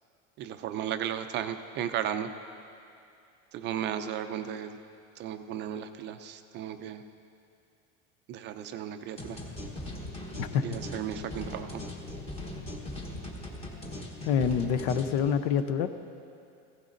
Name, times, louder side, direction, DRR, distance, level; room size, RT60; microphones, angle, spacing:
voice 1, 0.4-2.3 3.5-4.8 5.2-7.0 8.3-9.4 10.6-11.8, right 9 dB, 35° right, 8 dB, 0.4 m, -35 dB
sound 1, 9.2-15.2, left 1 dB, 20° left, 1.1 m, -40 dB
voice 2, 14.3-15.9, left 7 dB, 75° left, 10 dB, 0.7 m, -26 dB
15.5 x 14.5 x 2.6 m, 2.6 s
cardioid pair, 160°, 32 cm